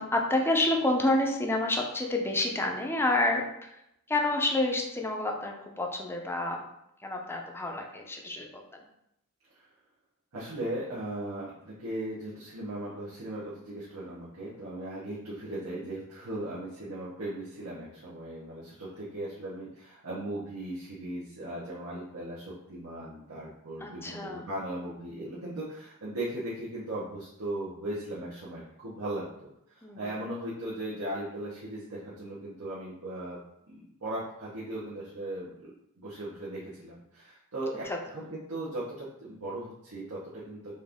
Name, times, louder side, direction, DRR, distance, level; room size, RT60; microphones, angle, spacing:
voice 1, 0.0-3.8 4.1-6.6 7.0-8.8 15.6-15.9 23.8-24.4 29.8-30.0 37.8-38.0, left 2 dB, 10° left, 1 dB, 0.5 m, -29 dB
voice 2, 10.3-33.4 33.7-40.7, right 1 dB, 80° right, -8 dB, 1.0 m, -38 dB
4.2 x 2.6 x 3.5 m, 0.79 s
head